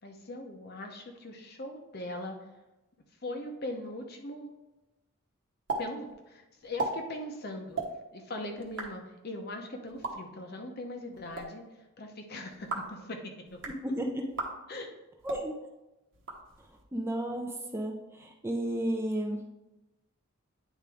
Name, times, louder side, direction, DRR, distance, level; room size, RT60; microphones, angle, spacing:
voice 1, 0.0-2.4 3.2-4.5 5.8-7.8 8.1-13.6 14.7-14.9, left 1 dB, 50° left, 4 dB, 0.8 m, -40 dB
sound 1, 5.7-5.8 6.1-6.2 6.6-6.9 7.7-7.9 8.6-8.9 9.9-10.1 11.1-11.4 12.5-12.9 13.5-13.8 14.3-14.5 15.2-15.4 16.1-16.8, right 3 dB, 60° right, 1.0 m, -36 dB
voice 2, 13.8-14.3 15.2-15.6 16.9-19.4, right 1 dB, 10° right, 1 dB, 0.5 m, -32 dB
9.2 x 3.6 x 3.5 m, 0.99 s
head